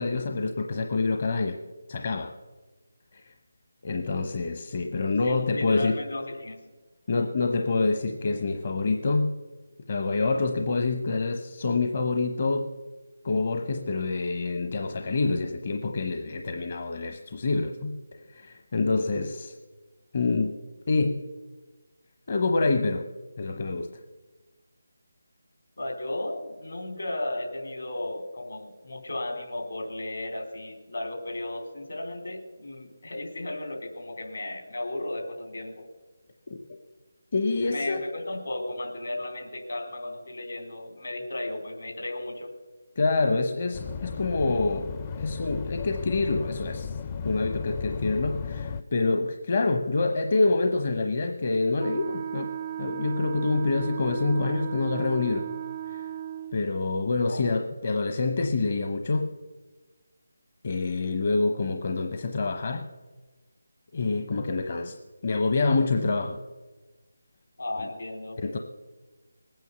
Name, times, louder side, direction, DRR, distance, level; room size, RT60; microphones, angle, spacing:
voice 1, 0.0-1.6 1.9-2.3 3.1-3.3 3.8-6.0 7.1-9.3 9.9-12.7 13.2-19.6 20.1-20.5 20.9-21.2 22.3-23.0 23.4-23.9 36.5-36.6 37.3-38.0 43.0-44.9 45.2-47.0 47.2-52.5 52.8-55.5 55.9-56.1 56.5-59.3 60.6-62.8 63.9-65.0 65.2-66.4 68.4-68.6, left 3 dB, 45° left, 5 dB, 1.0 m, -26 dB
voice 2, 5.2-6.6 25.8-35.9 37.7-42.5 57.3-57.5 67.6-68.4, left 1 dB, 70° left, 3 dB, 3.7 m, -35 dB
sound 1, 43.7-48.8, left 6 dB, 25° left, 0.5 m, -35 dB
Wind instrument woodwind instrument, 51.8-56.6, right 11 dB, 30° right, 0.4 m, -36 dB
20.5 x 9.3 x 6.8 m, 1.3 s
figure-of-eight pair, 160°, 0 cm